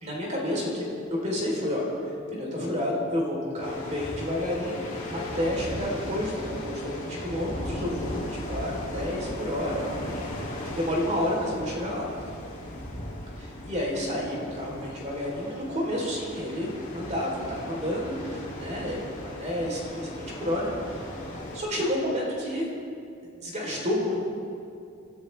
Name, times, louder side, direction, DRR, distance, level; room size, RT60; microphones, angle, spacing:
voice 1, 0.0-1.9 2.3-4.8 5.1-10.3 10.7-12.1 13.4-22.7 23.4-24.1, left 1 dB, 35° right, -2 dB, 3.5 m, -30 dB
sound 1, 0.6-5.6, left 8 dB, 20° right, 0.9 m, -42 dB
sound 2, 3.6-21.6, left 1 dB, 35° left, 2.5 m, -37 dB
29.0 x 13.0 x 3.3 m, 2.6 s
head